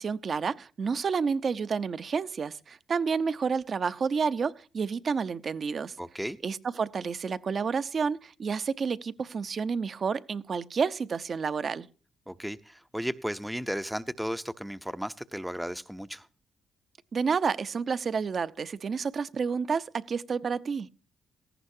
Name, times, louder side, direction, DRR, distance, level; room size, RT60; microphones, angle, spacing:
voice 1, 0.0-5.9 6.4-11.9 17.1-20.9, right 5 dB, 45° right, 0.8 m, -30 dB
voice 2, 6.0-6.4 12.3-16.3, equal, 5° right, 0.7 m, -34 dB
18.0 x 14.5 x 2.7 m
cardioid pair, 90°, 0 cm